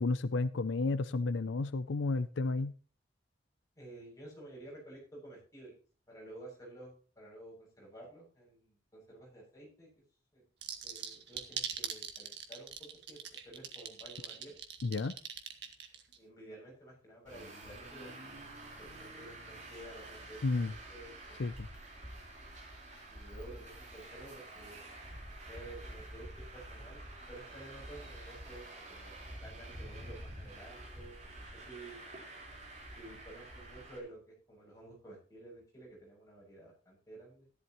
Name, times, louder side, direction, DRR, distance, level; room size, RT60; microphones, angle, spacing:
voice 1, 0.0-2.7 14.8-15.2 20.4-20.7 21.4-21.7, left 3 dB, 85° left, 14 dB, 0.5 m, -32 dB
voice 2, 3.8-5.7 6.1-9.9 10.3-10.4 10.8-14.6 16.2-18.1 18.8-21.4 23.1-24.8 25.2-26.3 26.5-27.0 27.3-31.2 31.5-32.0 32.9-37.5, right 1 dB, 15° left, -3 dB, 7.6 m, -52 dB
sound 1, 10.6-16.2, right 8 dB, 70° right, 1.9 m, -41 dB
Traffic noise roadway noise, 17.3-34.0, right 1 dB, 40° right, 4.3 m, -48 dB
14.5 x 12.0 x 3.1 m, 0.38 s
head